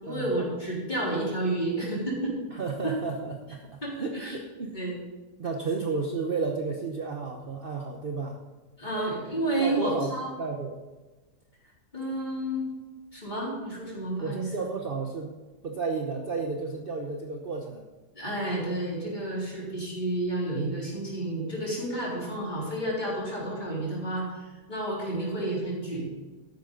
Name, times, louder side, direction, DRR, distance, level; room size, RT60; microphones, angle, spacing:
voice 1, 0.0-2.4 2.8-3.0 3.8-4.4 4.7-4.9 8.8-10.3 11.9-12.7 13.1-14.5 18.1-26.0, right 1 dB, 25° left, -5 dB, 3.9 m, -30 dB
voice 2, 2.5-4.8 5.4-8.4 9.6-10.1 10.4-10.8 14.2-15.3 15.6-17.9, right 4 dB, 40° right, 2 dB, 1.0 m, -32 dB
13.0 x 10.5 x 3.9 m, 1.2 s
omnidirectional pair, 1.7 m